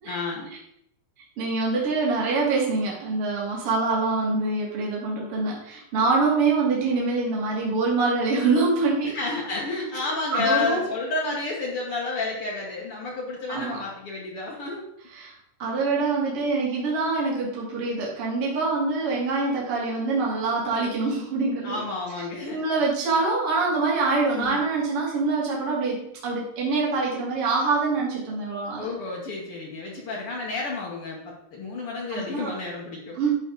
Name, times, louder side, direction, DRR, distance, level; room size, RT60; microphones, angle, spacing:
voice 1, 0.0-0.5 9.0-14.8 21.6-22.6 24.3-24.7 28.7-33.2, left 3 dB, 80° left, -3 dB, 1.2 m, -30 dB
voice 2, 1.4-9.1 10.3-10.8 13.5-13.8 15.2-15.3 15.6-21.8 22.5-28.9 32.1-32.5 33.2-33.3, right 3 dB, 40° right, -4 dB, 2.9 m, -25 dB
11.0 x 5.1 x 4.0 m, 0.77 s
omnidirectional pair, 4.6 m